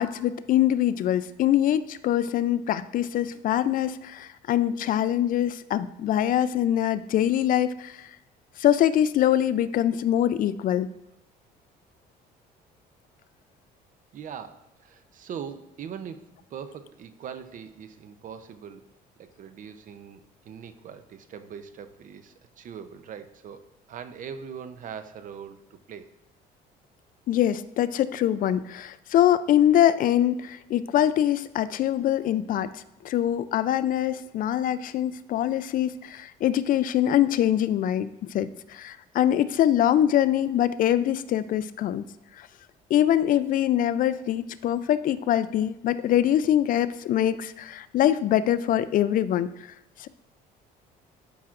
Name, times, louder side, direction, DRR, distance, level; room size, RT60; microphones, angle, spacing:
voice 1, 0.0-8.1 8.6-10.9 27.3-38.1 38.3-42.0 42.4-42.5 42.9-49.7 50.0-50.1, left 11 dB, 55° left, 15 dB, 0.4 m, -24 dB
voice 2, 14.1-18.9 19.2-26.1, right 7 dB, 50° right, 10 dB, 0.6 m, -41 dB
12.0 x 5.8 x 2.5 m, 0.88 s
cardioid pair, 110°, 17 cm